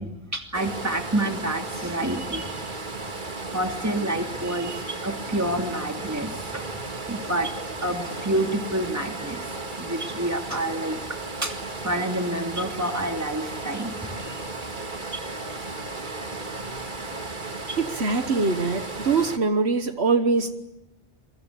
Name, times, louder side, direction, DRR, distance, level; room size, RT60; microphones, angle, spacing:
voice 1, 0.0-2.7 3.5-6.8 7.1-7.5 7.8-11.0 11.4-14.5 16.6-17.1, right 1 dB, 15° right, 4 dB, 2.8 m, -29 dB
sound 1, 0.5-19.4, right 3 dB, 45° right, 2.2 m, -34 dB
voice 2, 17.8-20.5, right 4 dB, 70° right, 9 dB, 1.6 m, -23 dB
28.0 x 23.0 x 8.5 m, 0.89 s
omnidirectional pair, 1.1 m